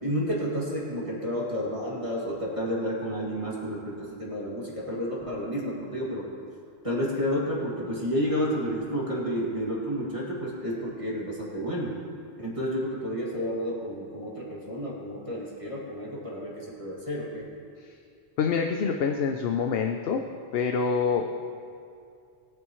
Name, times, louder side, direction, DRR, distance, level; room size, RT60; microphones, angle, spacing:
voice 1, 0.0-6.3 6.8-12.0 12.4-17.5, equal, 30° right, -5 dB, 2.4 m, -31 dB
voice 2, 18.4-20.2 20.5-21.3, left 6 dB, 65° left, 4 dB, 0.9 m, -26 dB
20.5 x 9.5 x 3.1 m, 2.4 s
omnidirectional pair, 1.1 m